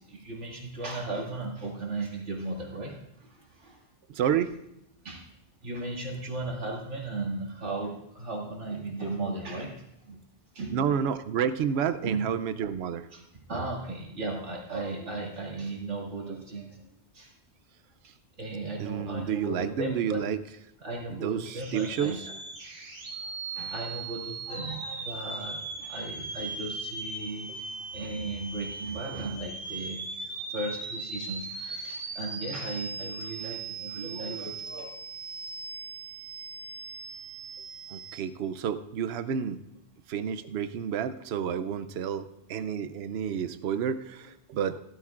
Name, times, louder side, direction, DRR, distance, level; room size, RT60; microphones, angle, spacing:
voice 1, 0.0-3.8 5.0-5.3 5.6-10.2 10.5-10.9 12.0-12.3 13.1-13.2 13.5-16.9 17.1-17.3 18.4-20.2 20.8-22.2 23.2-30.1 30.5-34.8, right 2 dB, 90° right, -2 dB, 2.5 m, -36 dB
voice 2, 4.1-4.6 10.7-13.1 18.8-20.4 21.1-22.3 27.5-27.6 37.9-39.6 40.1-44.8, right 8 dB, 70° right, 11 dB, 0.8 m, -30 dB
sound 1, 21.5-38.2, right 3 dB, 50° right, 1.5 m, -39 dB
17.5 x 12.5 x 2.5 m, 0.84 s
omnidirectional pair, 1.2 m